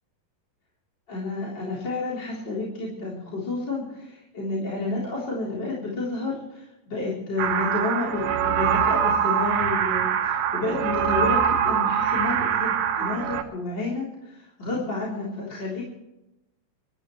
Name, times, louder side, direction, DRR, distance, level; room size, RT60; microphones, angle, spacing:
voice 1, 1.1-15.8, left 3 dB, 25° left, -5 dB, 3.9 m, -30 dB
sound 1, 7.4-13.4, right 8 dB, 80° right, 3.5 m, -23 dB
26.5 x 14.0 x 3.2 m, 0.93 s
omnidirectional pair, 4.9 m